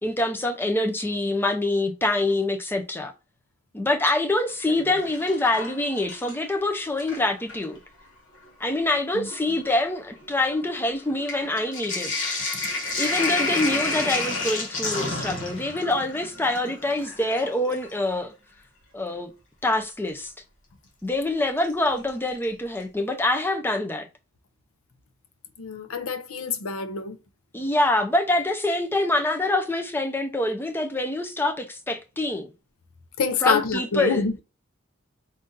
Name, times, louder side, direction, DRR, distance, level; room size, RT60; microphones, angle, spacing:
voice 1, 0.0-3.1 3.7-7.8 8.6-12.1 13.0-18.3 18.9-19.3 19.6-20.3 21.0-24.1 27.5-32.5 33.4-34.3, left 2 dB, 10° left, 0.4 m, -25 dB
Sink (filling or washing), 4.5-6.5 6.8-7.7 8.5-8.6 8.8-18.0 19.7-19.8 21.6-22.1 22.4-22.5 22.7-22.8, left 3 dB, 60° left, 1.3 m, -31 dB
voice 2, 25.6-27.2 33.2-34.4, left 4 dB, 90° left, 0.6 m, -26 dB
4.0 x 2.5 x 3.8 m
head